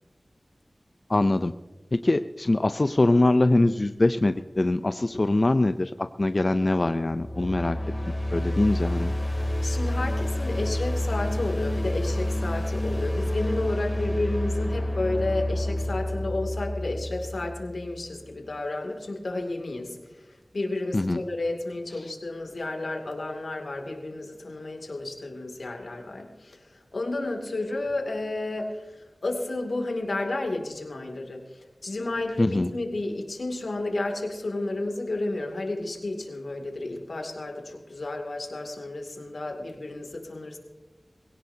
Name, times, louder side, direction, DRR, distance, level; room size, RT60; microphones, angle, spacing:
voice 1, 1.1-1.5 1.9-5.9 6.2-7.8 8.3-9.1 20.9-21.2 32.4-32.7, left 2 dB, 50° left, 10 dB, 0.5 m, -23 dB
sound 1, 7.0-18.0, left 1 dB, 20° left, 2.9 m, -29 dB
voice 2, 9.6-40.6, left 2 dB, 85° left, 2 dB, 2.5 m, -32 dB
21.5 x 17.0 x 2.8 m, 1.2 s
wide cardioid pair, 55°, 0 cm